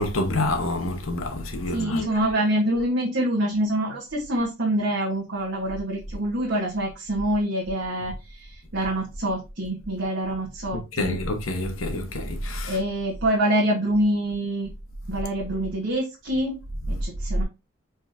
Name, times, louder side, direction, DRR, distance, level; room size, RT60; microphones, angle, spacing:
voice 1, 0.0-2.3 10.7-12.8, left 1 dB, 85° left, 1.1 m, -27 dB
voice 2, 1.7-11.2 12.6-14.7 15.1-16.5 16.9-17.4, right 1 dB, 60° right, 1.3 m, -26 dB
5.0 x 3.7 x 2.7 m
head